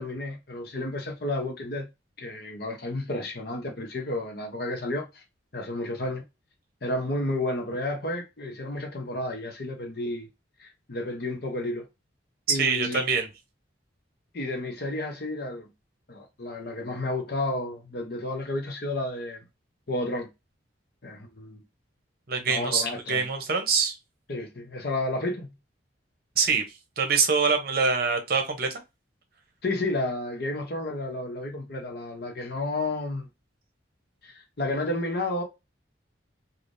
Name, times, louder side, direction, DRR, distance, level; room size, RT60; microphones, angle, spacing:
voice 1, 0.0-1.9 2.2-5.2 5.5-6.2 6.8-10.3 10.6-11.9 12.5-13.0 14.3-15.7 16.1-19.4 19.9-20.3 21.0-21.6 22.5-23.2 24.3-25.5 29.6-33.3 34.2-35.4, left 2 dB, 55° left, 0.8 m, -31 dB
voice 2, 12.5-13.3 22.3-24.0 26.4-26.6 27.0-28.7, right 5 dB, 50° right, 0.8 m, -24 dB
3.3 x 2.4 x 2.6 m
head